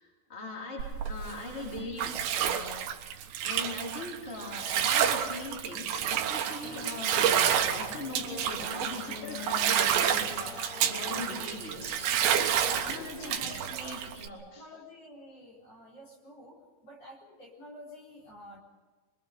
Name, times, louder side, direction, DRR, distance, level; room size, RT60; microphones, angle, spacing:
voice 1, 0.0-2.8 3.4-14.7, left 2 dB, 15° left, -2 dB, 4.0 m, -41 dB
Bathtub (filling or washing), 0.8-14.3, right 9 dB, 85° right, 3.6 m, -29 dB
sound 1, 6.6-14.1, left 6 dB, 70° left, 3.3 m, -44 dB
voice 2, 12.9-13.4 13.8-13.9 14.4-18.6, left 1 dB, 35° left, -4 dB, 5.0 m, -50 dB
24.5 x 23.5 x 5.3 m, 1.3 s
omnidirectional pair, 5.0 m